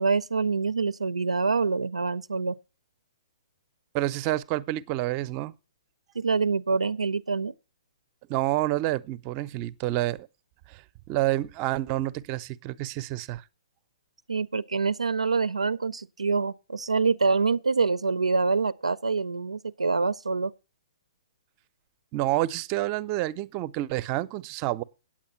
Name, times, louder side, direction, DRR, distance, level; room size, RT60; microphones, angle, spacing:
voice 1, 0.0-2.5 6.2-7.5 14.3-20.5, right 4 dB, 90° right, 0.4 m, -26 dB
voice 2, 3.9-5.5 8.3-10.3 10.7-13.4 22.1-24.8, right 15 dB, 35° right, 0.5 m, -28 dB
8.7 x 8.5 x 5.8 m
figure-of-eight pair, 125°, 3 cm